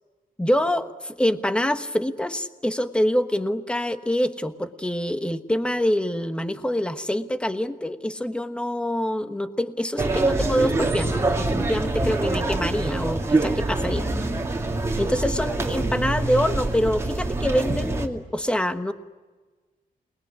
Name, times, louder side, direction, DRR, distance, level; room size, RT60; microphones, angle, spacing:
voice 1, 0.4-14.1 15.0-18.9, equal, 5° left, 8 dB, 1.2 m, -25 dB
sound 1, 10.0-18.1, right 2 dB, 20° right, 2.3 m, -25 dB
28.0 x 20.5 x 9.8 m, 1.3 s
wide cardioid pair, 160°, 15 cm